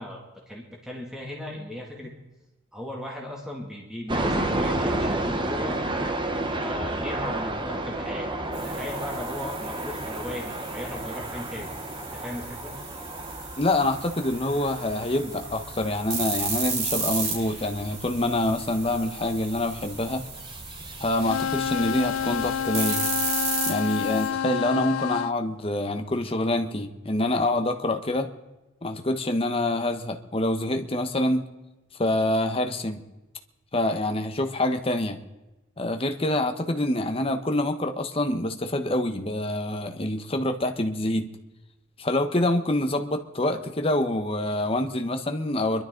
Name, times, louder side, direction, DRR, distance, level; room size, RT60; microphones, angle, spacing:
voice 1, 0.0-2.1 2.7-5.8 6.6-8.3 8.6-11.7 12.1-12.7, left 1 dB, 5° right, -2 dB, 2.4 m, -37 dB
sound 1, 4.1-22.6, right 1 dB, 25° right, 1.0 m, -33 dB
sound 2, 8.5-24.3, right 4 dB, 50° right, 5.4 m, -35 dB
voice 2, 13.6-20.2 21.0-23.1 23.7-28.3 28.8-31.5 32.0-33.0 33.7-35.2 35.8-41.3 42.0-45.8, left 1 dB, 25° left, 6 dB, 1.0 m, -26 dB
sound 3, 21.2-25.3, left 8 dB, 80° left, 0.4 m, -28 dB
24.5 x 12.0 x 3.9 m, 1.0 s
head